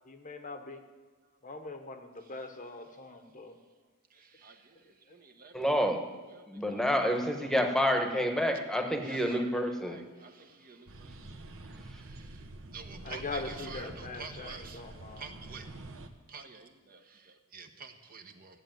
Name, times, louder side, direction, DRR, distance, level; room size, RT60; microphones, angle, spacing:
voice 1, 0.0-0.8 1.4-3.6 5.1-5.2 13.0-15.2, left 3 dB, 35° left, 7 dB, 1.0 m, -42 dB
voice 2, 4.1-7.6 8.4-8.6 9.0-11.1 11.7-12.4 12.7-15.7 16.3-18.6, right 4 dB, 40° right, 5 dB, 1.1 m, -49 dB
voice 3, 5.5-6.1 6.5-10.0, equal, ahead, 5 dB, 1.2 m, -28 dB
sound 1, 10.9-16.1, right 2 dB, 65° right, 1.1 m, -47 dB
14.5 x 8.3 x 9.1 m, 1.4 s
head